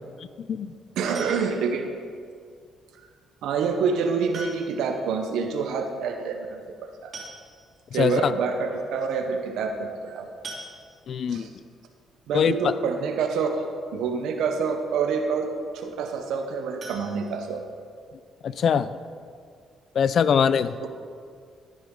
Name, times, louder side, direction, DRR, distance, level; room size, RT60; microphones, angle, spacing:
voice 1, 1.0-1.9 3.4-7.1 7.9-10.3 11.3-11.5 12.3-17.6, right 5 dB, 85° right, 4 dB, 0.8 m, -27 dB
sound 1, 1.1-1.8 3.3-3.4 4.3-4.9 5.2-5.3 5.6-5.7 6.7-6.8 7.1-7.8 8.4-8.5 8.8-9.0 10.4-11.3 16.8-18.0 18.3-18.4 18.9-19.0 19.3-19.4, right 2 dB, 50° right, 2.7 m, -42 dB
voice 2, 7.9-8.3 11.1-11.5 12.3-12.7 18.4-18.9 19.9-20.7, left 7 dB, 60° left, 14 dB, 0.4 m, -22 dB
10.5 x 10.5 x 3.8 m, 2.1 s
cardioid pair, 90°, 0 cm